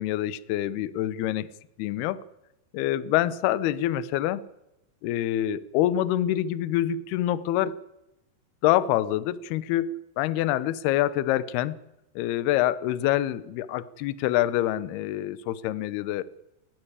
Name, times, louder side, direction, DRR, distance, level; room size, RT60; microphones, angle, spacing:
voice 1, 0.0-1.5 1.8-2.2 2.7-4.4 5.0-7.8 8.6-11.8 12.2-16.2, left 13 dB, 75° left, 2.7 m, -26 dB
20.0 x 17.0 x 8.2 m
omnidirectional pair, 4.9 m